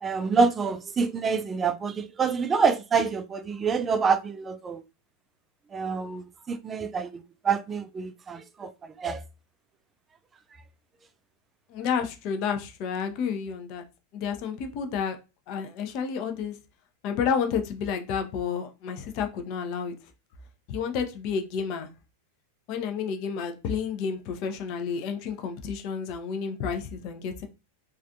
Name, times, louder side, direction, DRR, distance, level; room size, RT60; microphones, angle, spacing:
voice 1, 0.0-4.8 5.7-8.7 9.0-9.2, right 5 dB, 20° right, 0.3 m, -27 dB
voice 2, 11.7-13.8 14.1-15.2 15.5-16.6 17.0-19.9 20.7-21.9 22.7-27.5, left 6 dB, 40° left, 0.6 m, -30 dB
3.2 x 2.5 x 2.6 m
figure-of-eight pair, 90°, 0 cm